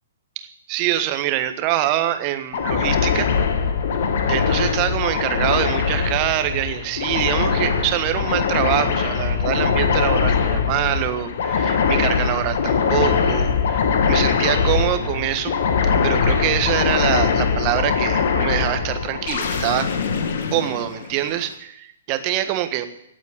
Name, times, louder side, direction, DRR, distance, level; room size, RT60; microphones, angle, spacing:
voice 1, 0.3-3.3 4.3-15.5 15.8-19.9 20.5-22.9, right 13 dB, 35° right, 9 dB, 1.5 m, -24 dB
sound 1, 2.5-21.4, left 6 dB, 55° left, 1.7 m, -21 dB
17.5 x 8.1 x 9.1 m, 0.79 s
figure-of-eight pair, 115°, 0 cm